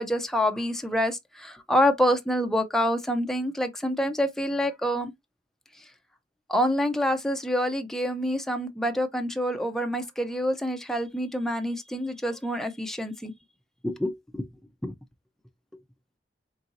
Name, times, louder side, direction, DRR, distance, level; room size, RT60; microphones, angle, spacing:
voice 1, 0.0-5.1 6.5-13.3 13.8-14.5 14.8-14.9, equal, 5° left, 0.6 m, -27 dB
4.3 x 3.9 x 2.5 m
head